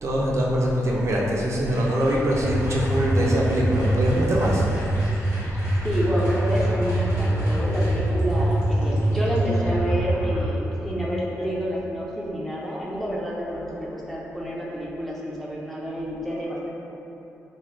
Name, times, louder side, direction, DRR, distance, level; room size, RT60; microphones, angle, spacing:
voice 1, 0.0-4.6, equal, 55° right, -3 dB, 0.4 m, -23 dB
sound 1, 1.7-9.6, left 1 dB, 80° left, 1.0 m, -42 dB
sound 2, 2.4-10.4, right 1 dB, 55° left, 1.3 m, -24 dB
voice 2, 5.8-16.7, equal, 5° left, -6 dB, 0.5 m, -29 dB
2.9 x 2.2 x 3.2 m, 2.9 s
cardioid pair, 80°, 6 cm